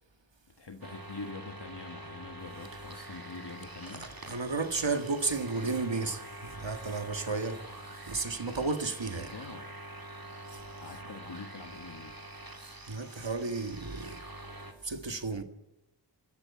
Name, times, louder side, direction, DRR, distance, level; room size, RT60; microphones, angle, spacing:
voice 1, 0.6-4.1 9.1-9.7 10.8-12.2, left 4 dB, 65° left, 1.5 m, -45 dB
sound 1, 0.8-14.7, right 1 dB, 50° right, 2.4 m, -46 dB
voice 2, 3.9-7.6 8.1-9.3 12.9-14.2 14.8-15.4, right 3 dB, 80° right, 1.8 m, -33 dB
28.0 x 12.5 x 8.6 m
wide cardioid pair, 40°, 44 cm